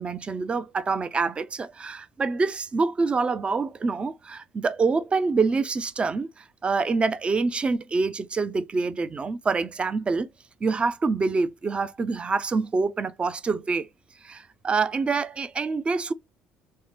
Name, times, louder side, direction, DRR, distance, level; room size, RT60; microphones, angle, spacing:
voice 1, 0.0-10.3 10.6-13.9 14.2-16.1, right 4 dB, 30° right, 0.5 m, -26 dB
3.2 x 2.1 x 2.9 m
supercardioid pair, 65°, 4 cm